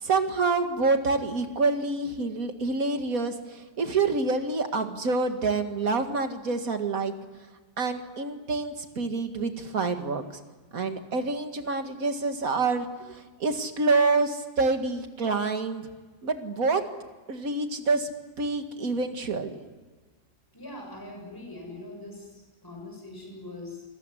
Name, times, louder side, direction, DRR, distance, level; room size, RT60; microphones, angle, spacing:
voice 1, 0.0-7.1 7.8-10.2 10.7-15.9 16.2-16.8 17.3-18.1 18.4-19.5, right 3 dB, 60° right, 6 dB, 2.3 m, -27 dB
voice 2, 20.5-23.9, left 2 dB, 10° left, 1 dB, 6.7 m, -42 dB
27.0 x 21.5 x 9.9 m, 1.3 s
omnidirectional pair, 1.7 m